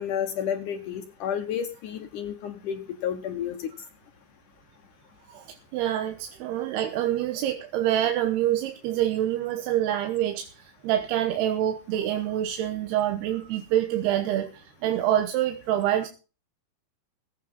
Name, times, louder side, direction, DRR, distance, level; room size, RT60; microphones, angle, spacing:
voice 1, 0.0-3.7, left 8 dB, 70° left, 7 dB, 2.1 m, -31 dB
voice 2, 5.7-14.5 14.8-16.1, right 12 dB, 90° right, 7 dB, 3.1 m, -26 dB
18.5 x 8.5 x 5.4 m, 0.33 s
omnidirectional pair, 4.5 m